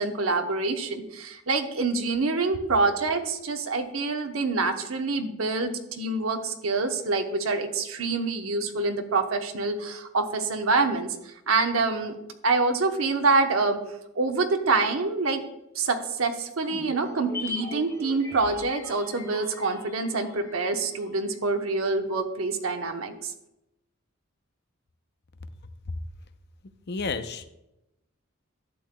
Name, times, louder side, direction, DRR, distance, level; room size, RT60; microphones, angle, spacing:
voice 1, 0.0-11.1 11.5-12.2 12.4-13.8 14.2-15.4 15.7-23.3, right 3 dB, 85° right, 6 dB, 0.9 m, -26 dB
sound 1, 16.6-21.1 21.3-21.4, left 2 dB, 15° left, 1.6 m, -40 dB
voice 2, 26.9-27.5, left 4 dB, 55° left, 9 dB, 0.6 m, -31 dB
11.5 x 8.3 x 2.2 m, 0.90 s
head